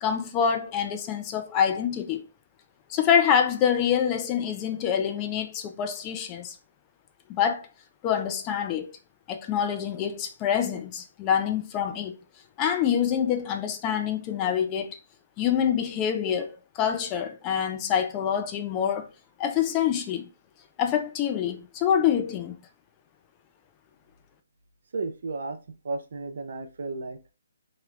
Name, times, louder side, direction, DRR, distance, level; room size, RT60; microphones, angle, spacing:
voice 1, 0.0-2.2 2.9-6.6 7.3-7.7 8.0-8.9 9.3-12.1 12.6-15.0 15.4-19.1 19.4-20.3 20.8-22.6, left 8 dB, 25° left, 0.4 m, -26 dB
voice 2, 24.9-25.6 25.8-27.3, right 3 dB, 65° right, 0.5 m, -33 dB
3.1 x 2.9 x 2.4 m
hypercardioid pair, 150°, 0 cm